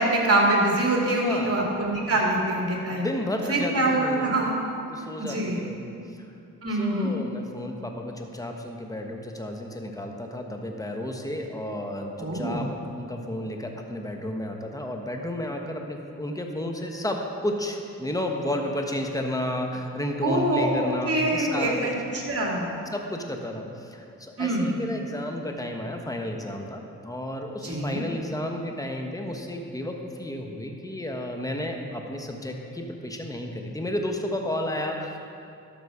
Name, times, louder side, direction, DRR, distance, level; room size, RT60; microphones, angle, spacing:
voice 1, 0.0-3.1 3.5-4.6 5.2-5.6 6.6-7.1 12.2-12.7 20.2-22.8 24.4-24.7 27.6-28.0, right 1 dB, 40° right, -2 dB, 2.7 m, -24 dB
voice 2, 1.0-1.6 2.1-2.2 2.9-4.3 4.9-6.2 6.7-12.7 13.0-21.9 22.9-35.2, left 1 dB, 10° left, 3 dB, 1.3 m, -32 dB
12.5 x 6.1 x 5.0 m, 2.7 s
cardioid pair, 50°, 35 cm